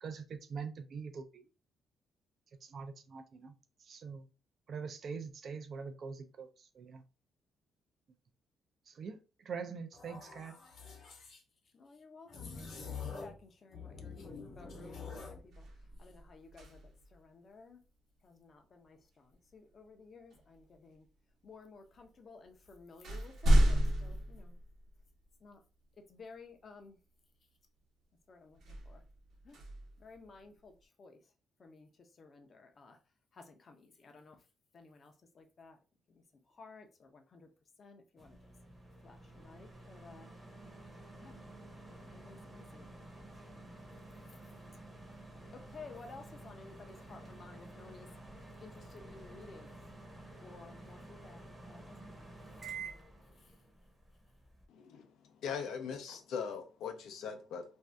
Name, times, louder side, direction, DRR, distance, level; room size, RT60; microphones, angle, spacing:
voice 1, 0.0-1.4 2.6-3.5 3.8-4.2 4.7-7.0 8.9-10.5, right 5 dB, 50° right, 0.4 m, -44 dB
sound 1, 9.9-11.4 12.3-13.4 13.7-15.4, left 5 dB, 60° left, 1.0 m, -46 dB
voice 2, 11.7-17.8 18.2-21.1 21.4-24.6 25.4-25.6 26.1-27.0 28.3-29.0 29.4-29.6 30.0-31.3 31.6-33.0 33.3-34.4 34.7-35.8 36.1-37.5 37.8-38.5 39.0-40.3 41.2-41.4 41.9-42.9 43.4-43.7 45.5-48.1 48.5-49.7 50.4-51.4 51.7-52.6 53.4-53.6, left 4 dB, 40° left, 0.6 m, -55 dB
sound 2, 14.5-14.7 15.1-17.2 19.3-19.5 20.3-21.1 21.9-22.0 22.4-25.3 25.8-25.9 28.5-30.7, equal, 70° right, 0.9 m, -33 dB
sound 3, 38.2-54.6, right 3 dB, 10° right, 0.8 m, -51 dB
voice 3, 54.7-55.1 55.4-57.6, left 6 dB, 80° left, 0.6 m, -40 dB
2.6 x 2.3 x 3.3 m
cardioid pair, 120°, 0 cm